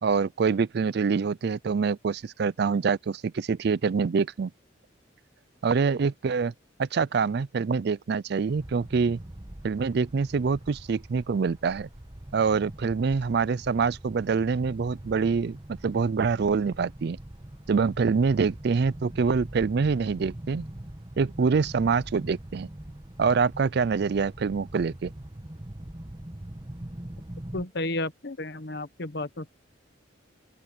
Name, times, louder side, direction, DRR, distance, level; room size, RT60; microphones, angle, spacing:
voice 1, 0.0-4.5 5.6-6.5 6.8-9.2 9.6-11.9 12.3-15.6 15.8-17.2 17.7-20.6 21.2-22.7 23.2-25.1, right 5 dB, 55° right, 0.4 m, -25 dB
sound 1, 8.5-27.7, right 1 dB, 25° right, 1.3 m, -43 dB
voice 2, 27.5-29.5, left 2 dB, 55° left, 1.1 m, -32 dB
open air
head